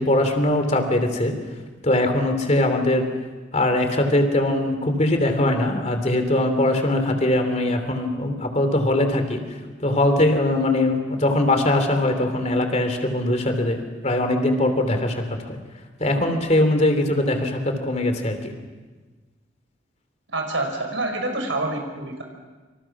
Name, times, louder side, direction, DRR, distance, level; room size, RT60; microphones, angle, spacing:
voice 1, 0.0-1.3 1.8-3.1 3.5-9.4 9.8-15.6 16.0-18.5, left 1 dB, 35° left, 6 dB, 3.2 m, -21 dB
voice 2, 20.3-22.2, right 2 dB, 85° right, 3 dB, 5.1 m, -27 dB
27.5 x 27.0 x 6.2 m, 1.3 s
head